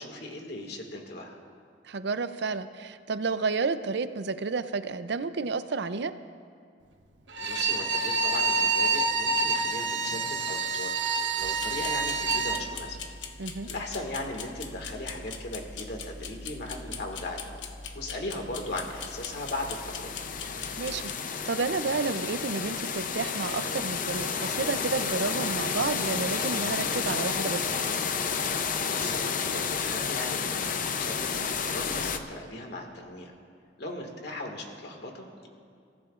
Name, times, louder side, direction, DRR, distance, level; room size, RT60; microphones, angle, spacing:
voice 1, 0.0-1.4 7.4-11.1 11.4-13.0 13.4-17.5 17.9-20.2 28.9-31.3 31.6-33.3 33.8-35.5, left 1 dB, 65° left, 2 dB, 2.0 m, -38 dB
voice 2, 1.8-6.1 13.4-13.7 20.8-27.7, right 4 dB, 70° right, 11 dB, 0.6 m, -31 dB
Bowed string instrument, 7.3-12.6, right 3 dB, 90° right, 1.1 m, -27 dB
sound 1, 11.4-21.1, left 5 dB, 90° left, 1.0 m, -41 dB
sound 2, 18.7-32.2, left 6 dB, 50° left, 0.7 m, -31 dB
30.0 x 15.0 x 2.5 m, 2.3 s
head